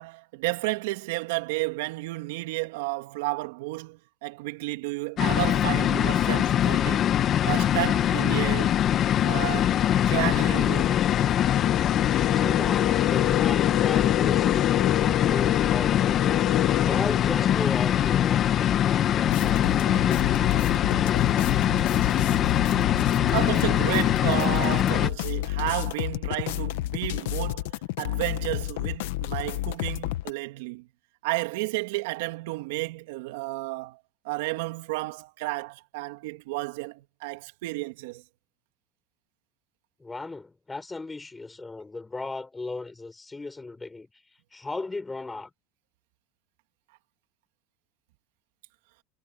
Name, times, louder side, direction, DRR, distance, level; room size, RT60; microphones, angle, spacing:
voice 1, 0.0-7.1 7.4-8.7 9.2-11.0 23.3-30.8 31.2-34.0 34.2-38.2, right 21 dB, 80° right, 2.7 m, -32 dB
sound 1, 5.2-25.1, left 10 dB, 40° left, 1.4 m, -23 dB
sound 2, 8.5-18.0, left 18 dB, 60° left, 2.0 m, -31 dB
voice 2, 12.3-16.5 16.8-21.3 40.0-44.1 44.5-45.5, left 3 dB, 15° left, 6.4 m, -36 dB
sound 3, 19.3-30.3, left 16 dB, 80° left, 1.3 m, -30 dB
supercardioid pair, 110°, 0 cm